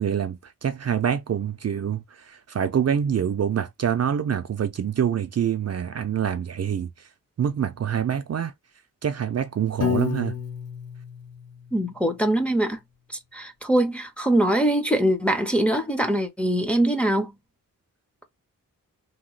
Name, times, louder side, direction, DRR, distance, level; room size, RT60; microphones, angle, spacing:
voice 1, 0.0-2.0 2.3-6.9 7.4-8.5 9.0-10.3, right 8 dB, 50° right, 0.4 m, -25 dB
Piano, 9.8-12.0, left 8 dB, 45° left, 0.9 m, -30 dB
voice 2, 11.7-12.8 13.1-17.3, right 1 dB, 5° left, 0.6 m, -23 dB
2.9 x 2.0 x 3.8 m
wide cardioid pair, 135°, 34 cm